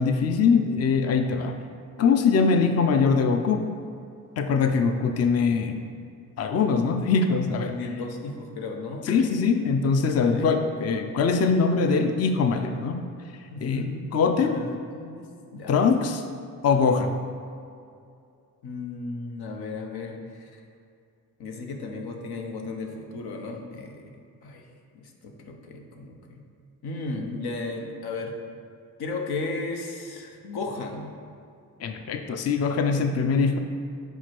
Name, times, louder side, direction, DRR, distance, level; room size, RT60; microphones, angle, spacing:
voice 1, 0.0-1.6 2.0-3.7 4.4-5.8 6.4-7.8 9.1-13.0 13.6-14.7 15.7-16.2 16.6-17.2 31.8-33.6, left 5 dB, 45° left, 6 dB, 0.5 m, -22 dB
voice 2, 7.7-9.3 10.1-10.5 13.5-13.9 14.4-14.7 14.9-15.3 15.5-15.7 18.6-20.2 21.4-24.1 24.4-24.6 24.9-26.4 26.8-28.3 29.0-31.1, left 3 dB, 85° left, 3 dB, 0.8 m, -34 dB
5.2 x 4.6 x 4.5 m, 2.4 s
cardioid pair, 75°, 37 cm